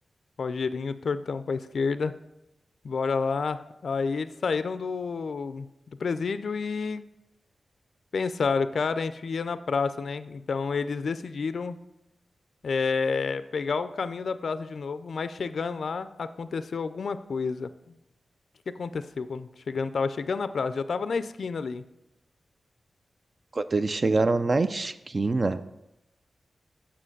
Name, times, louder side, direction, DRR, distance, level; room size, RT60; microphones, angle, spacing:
voice 1, 0.4-2.2 2.8-5.7 6.0-7.0 8.1-11.8 12.6-17.7 18.7-21.8, left 5 dB, 70° left, 13 dB, 0.4 m, -29 dB
voice 2, 23.5-25.6, right 3 dB, 40° right, 10 dB, 0.3 m, -25 dB
7.5 x 5.7 x 6.5 m, 0.90 s
wide cardioid pair, 90°, 0 cm